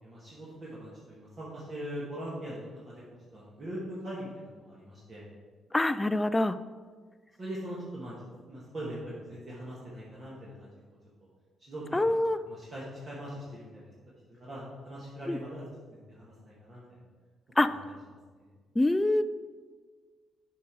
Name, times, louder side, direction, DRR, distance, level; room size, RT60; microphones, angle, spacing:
voice 1, 0.0-3.0 3.3-5.3 7.4-10.7 11.6-12.1 12.5-13.9 14.3-15.6 15.9-17.0 17.6-17.8 18.4-18.5, equal, 40° right, -7 dB, 1.9 m, -41 dB
voice 2, 5.7-6.6 11.9-12.4 15.3-15.4 17.6-17.7 18.8-19.2, left 1 dB, 15° left, 12 dB, 0.3 m, -25 dB
6.7 x 5.3 x 4.7 m, 1.5 s
cardioid pair, 90°, 0 cm